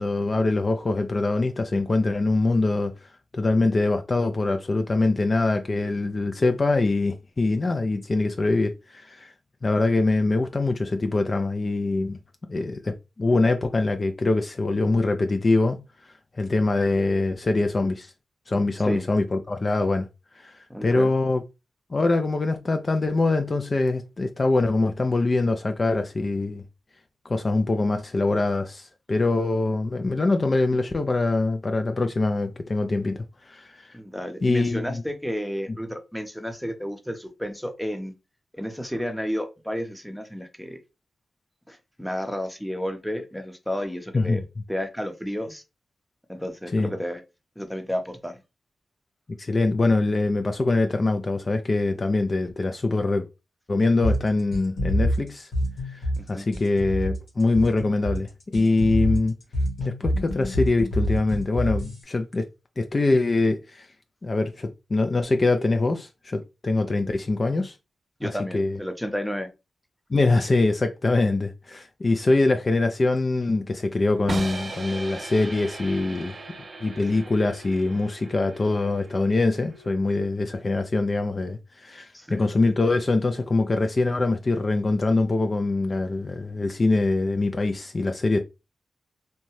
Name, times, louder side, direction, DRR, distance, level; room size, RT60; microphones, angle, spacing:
voice 1, 0.0-2.9 3.3-9.3 9.6-12.2 12.5-15.8 16.4-18.1 18.5-20.1 20.4-21.4 21.9-26.6 27.3-33.9 34.4-35.0 44.1-44.4 46.7-46.9 49.4-53.3 53.7-55.5 55.9-56.0 56.3-59.3 59.8-62.5 62.8-63.9 64.2-67.8 68.2-68.8 70.1-76.3 76.8-88.4, left 3 dB, 45° left, 0.3 m, -23 dB
voice 2, 20.7-21.1 33.9-38.1 38.5-40.8 41.7-44.4 44.7-45.6 46.3-47.2 47.6-48.4 56.2-56.5 59.8-59.9 68.2-69.5 82.1-82.5, equal, ahead, 0.7 m, -31 dB
sound 1, 54.0-62.0, equal, 85° left, 1.2 m, -27 dB
sound 2, 74.3-80.3, right 3 dB, 50° right, 0.4 m, -38 dB
2.7 x 2.1 x 3.0 m
cardioid pair, 55°, 0 cm